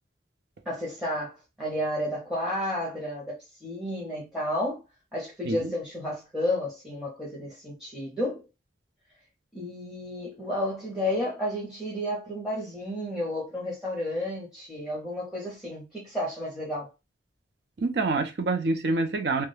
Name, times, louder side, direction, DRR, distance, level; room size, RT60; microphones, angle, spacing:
voice 1, 0.7-4.8 5.1-8.5 9.5-16.9, left 1 dB, 5° right, 0.6 m, -32 dB
voice 2, 17.8-19.5, right 3 dB, 60° right, 0.4 m, -26 dB
2.2 x 2.1 x 3.1 m
head